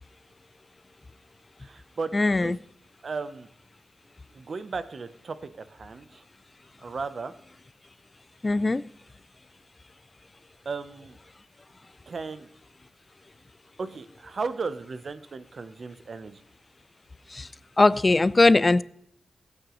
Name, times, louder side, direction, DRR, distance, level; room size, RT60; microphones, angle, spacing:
voice 1, 1.6-2.1 2.4-2.5 3.0-3.5 4.3-6.2 6.8-7.3 10.6-11.2 12.1-12.5 13.8-16.4, right 4 dB, 55° right, 13 dB, 0.7 m, -35 dB
voice 2, 2.1-2.6 8.4-8.8 17.3-17.5 17.8-18.8, left 2 dB, 25° left, 19 dB, 0.3 m, -20 dB
16.5 x 8.8 x 3.1 m, 0.74 s
wide cardioid pair, 90°, 0 cm